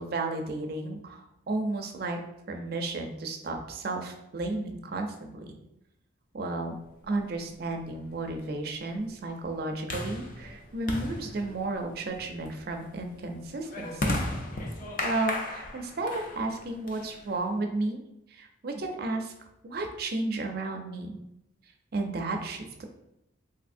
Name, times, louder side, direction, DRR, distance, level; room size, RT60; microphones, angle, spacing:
voice 1, 0.0-2.2 2.5-5.5 6.3-6.7 7.1-14.1 15.0-18.0 18.3-19.3 19.6-21.1 21.9-22.9, right 2 dB, 50° right, 4 dB, 0.4 m, -33 dB
sound 1, 7.2-17.6, left 1 dB, 45° left, 0.4 m, -36 dB
3.4 x 2.6 x 2.5 m, 0.86 s
head